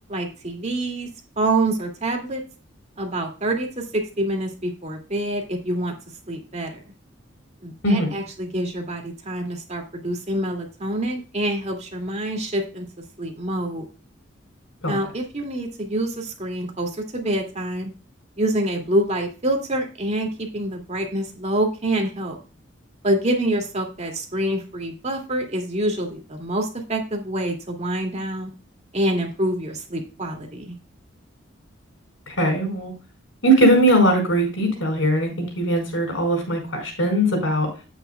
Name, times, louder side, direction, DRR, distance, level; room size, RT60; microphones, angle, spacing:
voice 1, 0.1-1.1 1.4-2.4 3.0-5.9 6.3-6.8 7.6-12.9 13.2-13.9 14.9-17.9 18.4-22.4 23.0-28.5 28.9-30.7, right 1 dB, 35° right, 2 dB, 2.4 m, -26 dB
voice 2, 32.4-32.9 33.4-37.7, right 1 dB, 80° left, 3 dB, 4.9 m, -20 dB
10.5 x 9.2 x 2.3 m, 0.33 s
head